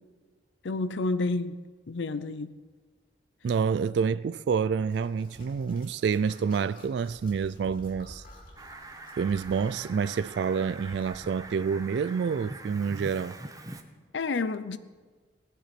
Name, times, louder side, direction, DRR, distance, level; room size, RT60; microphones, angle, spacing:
voice 1, 0.6-1.6 1.9-2.5 14.1-14.8, left 3 dB, 80° left, 0.6 m, -29 dB
voice 2, 3.4-8.2 9.2-13.4, right 6 dB, 65° right, 0.3 m, -28 dB
sound 1, 4.9-11.2, left 1 dB, 50° left, 2.8 m, -52 dB
Fowl, 8.6-13.8, right 2 dB, 20° right, 0.9 m, -44 dB
16.5 x 10.0 x 6.0 m
head